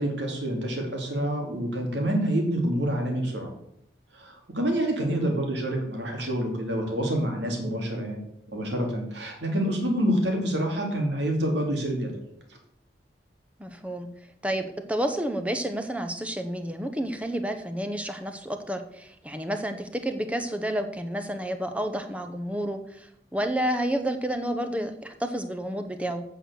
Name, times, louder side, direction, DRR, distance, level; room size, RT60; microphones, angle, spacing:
voice 1, 0.0-3.5 4.1-12.2, right 1 dB, 75° right, 2 dB, 2.8 m, -27 dB
voice 2, 13.6-14.1 14.4-26.2, right 1 dB, 5° right, 7 dB, 0.9 m, -30 dB
8.9 x 6.3 x 6.8 m, 0.74 s
head